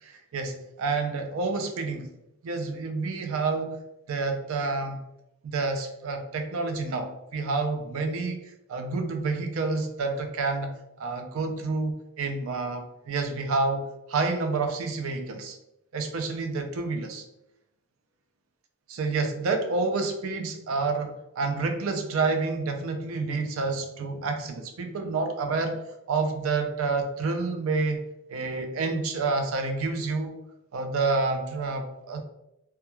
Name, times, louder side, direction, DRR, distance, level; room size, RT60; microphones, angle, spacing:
voice 1, 0.0-2.1 2.4-3.8 4.1-5.0 5.4-8.4 8.7-15.6 15.9-17.2 18.9-25.8 26.1-28.0 28.3-30.4 30.7-32.2, right 3 dB, 75° right, 6 dB, 0.4 m, -29 dB
2.2 x 2.2 x 2.9 m, 0.87 s
head